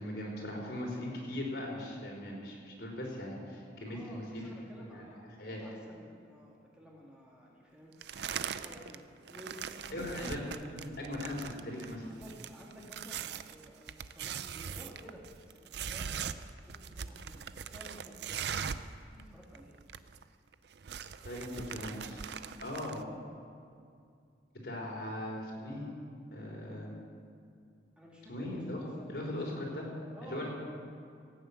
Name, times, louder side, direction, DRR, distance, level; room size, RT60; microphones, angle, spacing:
voice 1, 0.0-4.5 4.9-5.1 5.4-5.6 9.9-12.1 21.2-22.3 22.6-23.0 24.6-25.9 26.3-27.0 28.3-28.8 29.1-29.9 30.2-30.5, left 1 dB, 65° left, -2 dB, 3.8 m, -39 dB
voice 2, 3.9-5.2 5.6-7.9 8.4-9.0 9.3-10.3 10.7-11.1 12.1-16.1 16.7-18.6 19.1-19.7 23.0-23.2 28.0-30.5, equal, 5° right, -4 dB, 1.9 m, -53 dB
sound 1, 8.0-9.0 9.3-18.9 19.2-19.3 19.5-20.2 20.5-23.0, right 7 dB, 65° right, 0.5 m, -41 dB
17.0 x 7.3 x 8.2 m, 2.3 s
head